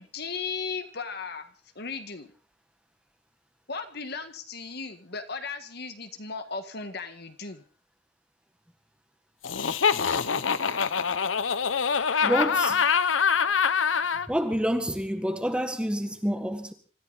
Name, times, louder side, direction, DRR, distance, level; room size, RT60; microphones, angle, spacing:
voice 1, 0.0-1.5 1.8-2.3 3.7-7.6, left 4 dB, 55° left, 1.7 m, -36 dB
Laughter, 9.4-14.3, left 6 dB, 90° left, 0.9 m, -24 dB
voice 2, 12.2-12.8 14.3-16.7, equal, 5° right, 1.6 m, -28 dB
25.5 x 14.0 x 4.1 m
head